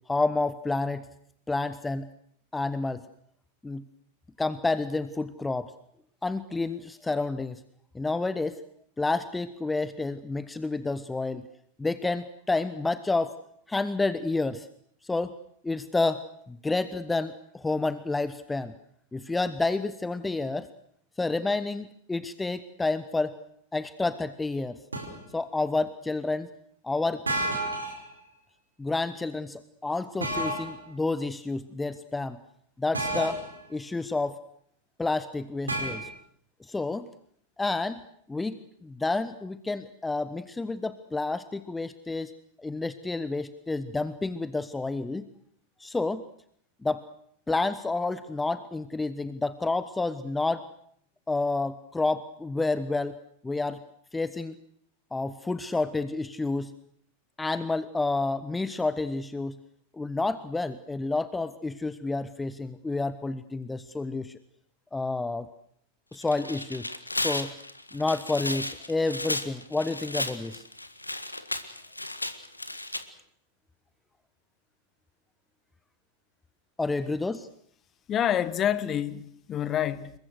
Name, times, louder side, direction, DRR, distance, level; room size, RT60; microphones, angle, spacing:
voice 1, 0.1-1.1 1.5-2.1 2.5-3.1 3.6-3.8 4.4-5.7 6.2-7.6 7.9-8.6 9.0-11.5 11.8-13.4 13.7-14.7 15.0-15.3 15.6-18.7 19.1-20.7 21.2-23.3 23.7-24.8 25.3-26.5 26.8-27.2 28.8-32.4 32.8-33.4 33.7-34.4 35.0-36.1 36.6-37.1 37.6-38.0 38.3-42.3 42.6-45.3 45.8-46.2 46.8-47.0 47.5-50.7 51.3-53.2 53.4-53.8 54.1-54.5 55.1-56.7 57.4-59.6 59.9-64.4 64.9-65.5 66.1-66.9 67.2-67.5 67.9-70.7 76.8-77.5, left 3 dB, 10° left, 0.9 m, -29 dB
sound 1, 24.9-25.2 27.3-28.0 30.2-30.7 32.9-33.6 35.7-36.0, right 1 dB, 75° right, 5.1 m, -30 dB
Tearing, 66.1-73.0, left 2 dB, 85° left, 1.8 m, -34 dB
voice 2, 78.1-80.1, left 10 dB, 30° left, 1.4 m, -27 dB
27.5 x 23.0 x 6.5 m
figure-of-eight pair, 90°, 0 cm